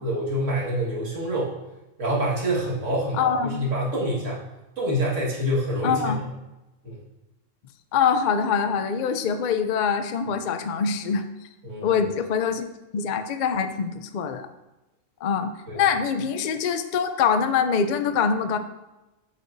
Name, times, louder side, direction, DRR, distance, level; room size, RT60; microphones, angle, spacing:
voice 1, 0.0-1.5 2.0-4.4 4.8-6.3 6.8-7.0 11.6-12.0 15.7-15.8, equal, 65° right, -5 dB, 2.0 m, -26 dB
voice 2, 3.1-3.6 5.8-6.2 7.9-11.2 11.8-12.7 12.9-14.5 15.2-18.6, left 6 dB, 70° left, 9 dB, 0.4 m, -24 dB
7.9 x 5.2 x 2.6 m, 1.0 s
omnidirectional pair, 1.4 m